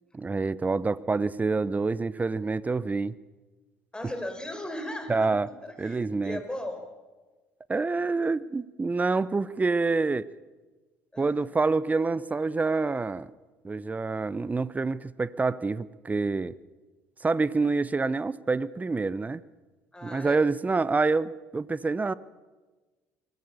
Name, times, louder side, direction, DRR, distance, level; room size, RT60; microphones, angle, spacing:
voice 1, 0.1-3.2 5.1-5.5 5.8-6.4 7.7-10.3 11.2-13.3 13.6-16.6 17.2-19.4 20.0-22.1, right 3 dB, 20° right, 19 dB, 0.8 m, -27 dB
voice 2, 3.9-5.3 5.6-6.8 11.1-11.4 17.6-17.8 19.9-20.5, left 1 dB, 10° left, 6 dB, 5.1 m, -37 dB
23.0 x 18.0 x 7.2 m, 1.3 s
hypercardioid pair, 60°, 8 cm